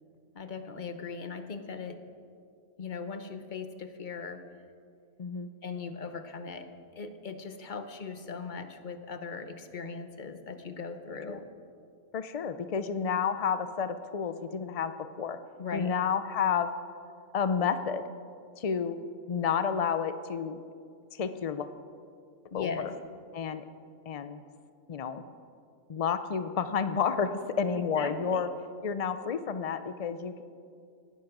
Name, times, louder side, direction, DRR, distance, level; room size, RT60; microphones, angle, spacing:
voice 1, 0.3-2.0 2.8-4.4 5.6-11.5 15.6-15.9 22.5-22.9 28.0-28.4, left 5 dB, 40° left, 8 dB, 0.9 m, -39 dB
voice 2, 5.2-5.5 11.3-11.4 12.1-15.4 15.7-16.7 17.3-18.0 18.6-19.0 19.3-20.6 21.1-21.7 22.5-22.9 23.3-23.6 24.1-24.4 24.9-25.2 25.9-28.5 28.8-30.4, left 6 dB, 75° left, 11 dB, 0.3 m, -30 dB
18.5 x 10.0 x 6.0 m, 2.3 s
omnidirectional pair, 1.5 m